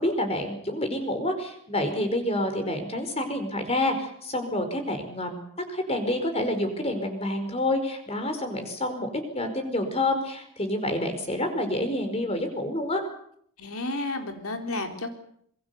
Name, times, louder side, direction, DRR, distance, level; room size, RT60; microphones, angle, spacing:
voice 1, 0.0-5.4 5.7-13.0, left 1 dB, 30° left, 6 dB, 4.9 m, -28 dB
voice 2, 13.6-15.1, left 2 dB, 80° left, 5 dB, 4.0 m, -31 dB
26.0 x 23.0 x 7.0 m, 0.67 s
head